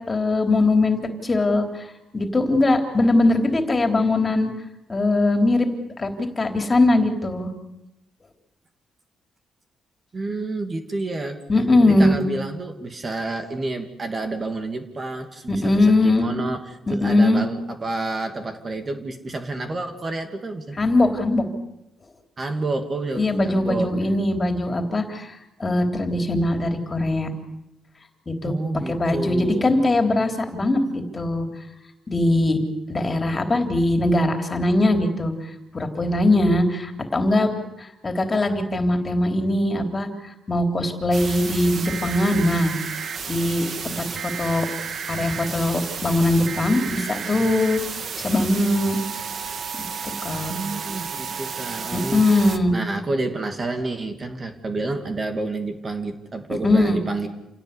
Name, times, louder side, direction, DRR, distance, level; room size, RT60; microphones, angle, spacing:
voice 1, 0.0-1.9 2.1-4.5 4.9-5.7 6.0-7.5 11.5-12.2 15.5-16.3 16.9-17.4 20.8-21.4 23.2-27.3 28.3-28.5 28.9-31.5 32.1-32.6 32.9-35.3 35.7-37.5 37.8-40.1 40.5-42.7 43.3-44.0 44.4-44.7 45.1-47.8 48.2-49.0 50.0-50.5 51.9-52.7 56.6-57.0, left 2 dB, 30° left, 4 dB, 3.6 m, -21 dB
voice 2, 10.1-11.4 11.8-20.8 22.4-23.9 28.4-29.8 50.5-52.4 52.7-57.3, right 2 dB, 35° right, 6 dB, 2.7 m, -29 dB
sound 1, 41.1-52.6, right 6 dB, 55° right, 1.7 m, -32 dB
28.5 x 17.0 x 8.4 m, 0.89 s
cardioid pair, 95°, 0 cm